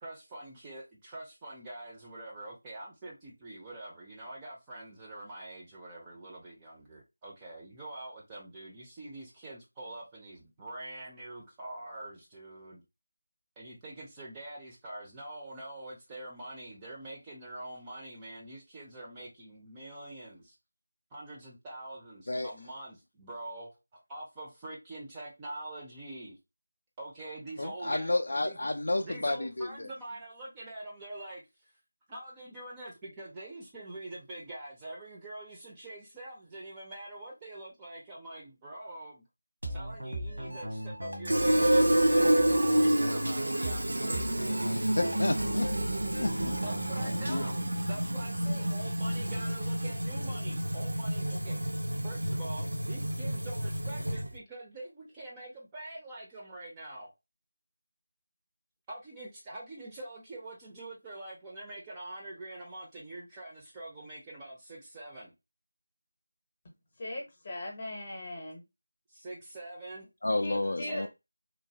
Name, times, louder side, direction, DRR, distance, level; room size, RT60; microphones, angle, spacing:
voice 1, 0.0-12.8 13.6-20.5 21.1-26.4 27.0-28.1 28.4-28.6 29.0-31.7 32.1-39.2 39.7-44.7 46.6-47.6 47.9-51.6 52.0-57.1 58.9-65.3 69.1-70.1 70.8-71.1, right 2 dB, 15° right, 0.5 m, -45 dB
voice 2, 27.6-29.9 44.7-45.7 46.2-46.5 47.3-47.5 70.2-71.1, left 2 dB, 60° left, 0.3 m, -31 dB
sound 1, 39.6-47.8, equal, 85° right, 1.2 m, -38 dB
Fill (with liquid), 41.3-54.4, right 1 dB, 70° right, 0.5 m, -29 dB
voice 3, 67.0-68.6 70.4-71.1, left 1 dB, 35° left, 0.7 m, -39 dB
3.0 x 2.1 x 2.7 m
figure-of-eight pair, 165°, 0 cm